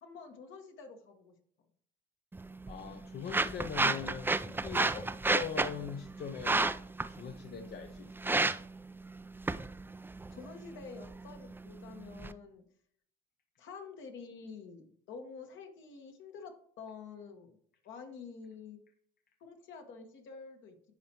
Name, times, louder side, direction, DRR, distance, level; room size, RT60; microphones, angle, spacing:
voice 1, 0.0-1.3 10.3-12.6 13.6-17.6 17.8-18.8 19.4-20.8, left 5 dB, 70° left, 4 dB, 1.6 m, -48 dB
sound 1, 2.3-12.3, right 3 dB, 10° right, 0.4 m, -34 dB
voice 2, 2.7-6.8 7.1-8.3, left 7 dB, 50° left, 6 dB, 0.7 m, -41 dB
11.0 x 4.2 x 3.0 m, 0.65 s
supercardioid pair, 70°, 20 cm